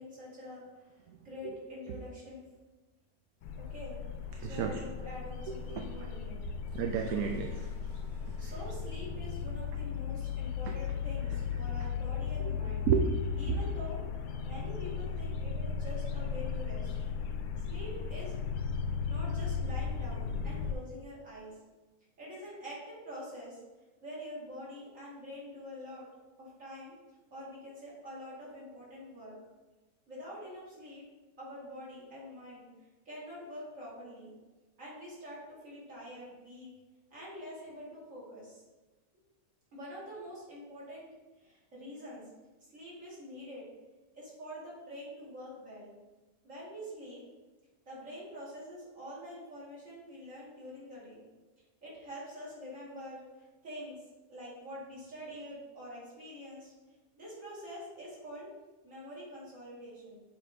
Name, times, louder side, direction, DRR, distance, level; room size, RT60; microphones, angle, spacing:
voice 1, 0.0-2.4 3.6-4.0 4.4-6.5 8.1-12.9 13.4-14.0 14.4-17.0 17.7-18.4 19.1-21.6 22.2-23.6 24.0-26.1 26.4-27.0 27.3-29.3 30.1-31.0 31.4-32.7 33.1-34.4 34.8-36.7 37.1-38.6 39.7-41.1 41.4-42.2 42.7-43.7 44.1-45.9 46.4-47.2 47.9-51.2 51.8-54.0 54.3-56.7 57.1-58.5 58.8-60.2, equal, 55° right, -7 dB, 2.5 m, -46 dB
sound 1, 3.4-20.7, left 6 dB, 80° left, 1.1 m, -36 dB
voice 2, 4.4-4.8 5.7-6.1 6.4-8.5 12.9-13.0, right 7 dB, 75° right, 3 dB, 1.0 m, -33 dB
7.3 x 4.0 x 3.4 m, 1.2 s
omnidirectional pair, 1.6 m